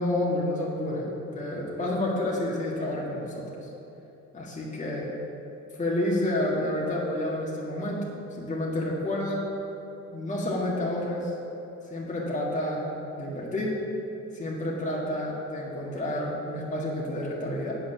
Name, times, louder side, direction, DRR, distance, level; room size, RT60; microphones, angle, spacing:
voice 1, 0.0-3.7 4.3-5.1 5.8-8.0 8.4-9.4 10.1-11.3 11.9-12.9 13.2-13.8 14.3-17.8, left 1 dB, 25° left, -5 dB, 1.9 m, -29 dB
8.6 x 5.7 x 7.2 m, 2.9 s
cardioid pair, 90°, 30 cm